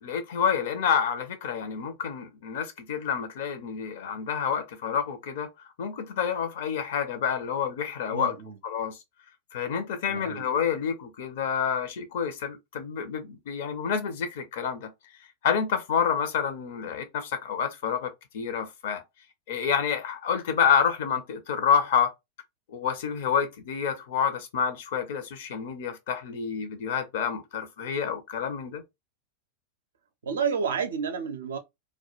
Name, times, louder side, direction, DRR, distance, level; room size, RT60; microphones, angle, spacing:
voice 1, 0.0-8.3 8.6-9.0 9.5-14.9 15.4-19.0 19.5-22.1 22.7-28.8, left 7 dB, 55° left, 0.5 m, -28 dB
voice 2, 8.1-8.6 10.1-10.5 30.2-31.6, right 6 dB, 65° right, 0.4 m, -30 dB
2.2 x 2.1 x 2.9 m
figure-of-eight pair, 90°, 0 cm